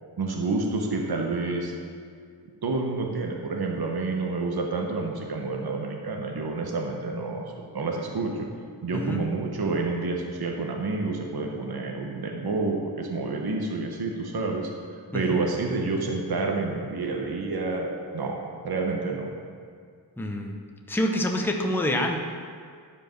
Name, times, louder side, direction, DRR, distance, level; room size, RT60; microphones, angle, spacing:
voice 1, 0.2-1.7 2.6-7.4 7.7-8.5 8.8-14.7 15.1-18.4 18.6-19.3, right 3 dB, 60° right, 1 dB, 1.0 m, -29 dB
voice 2, 8.9-9.2 15.1-15.4 20.2-20.6 20.9-22.2, left 1 dB, 5° left, 2 dB, 0.7 m, -27 dB
10.5 x 4.9 x 6.5 m, 2.1 s
wide cardioid pair, 110°, 43 cm